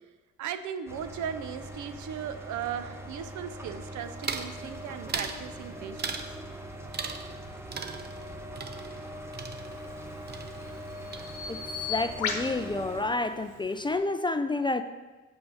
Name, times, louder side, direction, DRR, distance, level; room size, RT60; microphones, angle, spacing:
voice 1, 0.4-6.2, right 8 dB, 75° right, 10 dB, 0.7 m, -37 dB
sound 1, 0.9-13.0, right 1 dB, 10° right, 1.0 m, -42 dB
sound 2, 4.2-4.6 5.1-5.4 6.0-6.4 6.9-7.4 7.7-10.0 10.3-10.9 11.1-11.7, right 5 dB, 35° right, 0.7 m, -37 dB
Bird vocalization bird call bird song, 9.8-14.0, left 6 dB, 80° left, 1.1 m, -38 dB
voice 2, 11.9-14.8, left 2 dB, 15° left, 10 dB, 0.3 m, -29 dB
7.6 x 5.7 x 5.5 m, 1.2 s
cardioid pair, 90°, 30 cm